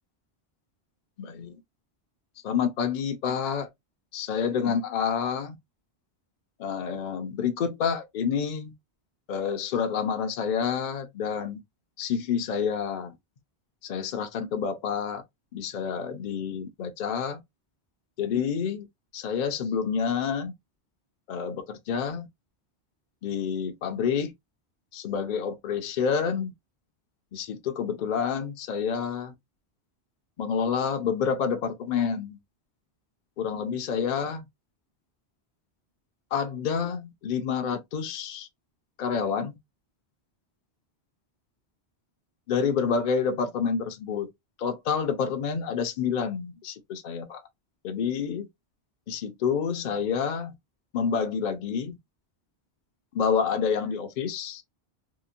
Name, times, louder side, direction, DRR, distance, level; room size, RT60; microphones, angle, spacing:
voice 1, 1.2-1.6 2.4-3.7 4.1-5.6 6.6-8.7 9.3-11.6 12.0-13.2 13.8-15.2 15.5-17.4 18.2-18.9 19.1-20.5 21.3-22.3 23.2-24.3 24.9-26.5 27.3-29.3 30.4-32.4 33.4-34.5 36.3-38.5 39.0-39.6 42.5-44.3 44.6-47.4 47.8-48.5 49.1-50.5 50.9-52.0 53.1-54.6, left 6 dB, 55° left, 0.6 m, -28 dB
2.8 x 2.1 x 2.5 m
omnidirectional pair, 1.1 m